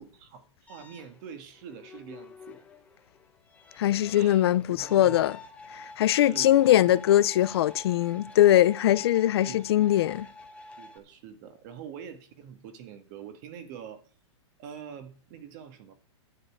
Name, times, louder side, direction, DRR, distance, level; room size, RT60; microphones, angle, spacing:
voice 1, 0.0-2.6 4.1-5.2 6.1-6.9 9.4-10.1 10.8-14.0 14.6-15.9, right 8 dB, 35° right, 1.8 m, -45 dB
sound 1, 0.7-11.0, left 3 dB, 10° left, 1.1 m, -48 dB
voice 2, 3.8-5.4 5.7-10.3, left 13 dB, 55° left, 0.5 m, -22 dB
11.0 x 5.5 x 8.6 m
hypercardioid pair, 165°, 16 cm